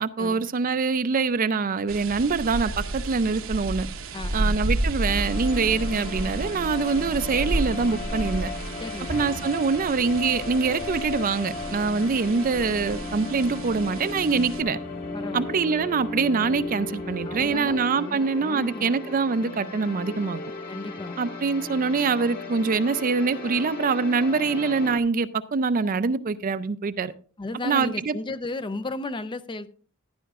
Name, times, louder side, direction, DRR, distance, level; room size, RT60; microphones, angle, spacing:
voice 1, 0.0-3.9 4.3-8.5 9.1-14.8 15.3-20.4 21.2-27.1 27.6-28.1, right 4 dB, 40° right, 0.5 m, -24 dB
sound 1, 1.9-14.6, right 2 dB, 70° right, 0.9 m, -32 dB
voice 2, 4.1-4.6 8.8-9.4 14.3-14.5 15.1-15.5 17.2-18.9 20.7-21.2 27.4-29.7, left 2 dB, 25° left, 0.5 m, -35 dB
sound 2, 5.0-25.0, left 3 dB, 45° left, 1.5 m, -36 dB
sound 3, 9.1-17.9, equal, 65° left, 4.3 m, -45 dB
14.5 x 11.0 x 2.4 m
head